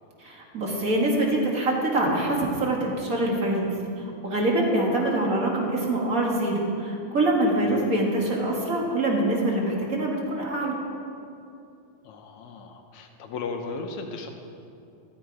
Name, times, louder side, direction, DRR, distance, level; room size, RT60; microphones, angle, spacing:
voice 1, 0.2-10.8, right 1 dB, 30° right, -1 dB, 1.8 m, -25 dB
voice 2, 12.0-14.3, left 4 dB, 70° left, 4 dB, 2.0 m, -36 dB
14.0 x 13.0 x 4.8 m, 2.6 s
omnidirectional pair, 3.8 m